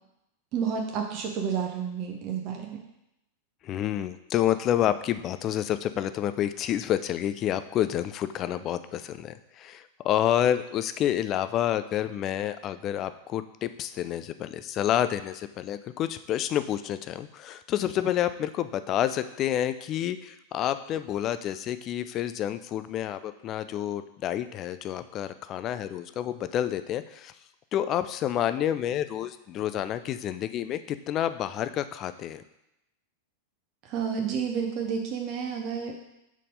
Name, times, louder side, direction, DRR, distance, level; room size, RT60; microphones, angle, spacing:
voice 1, 0.5-2.8 33.8-36.0, right 7 dB, 40° right, 2 dB, 0.8 m, -30 dB
voice 2, 3.6-27.3 27.7-32.4, left 11 dB, 35° left, 12 dB, 0.4 m, -29 dB
5.1 x 4.1 x 5.3 m, 0.85 s
figure-of-eight pair, 90°, 0 cm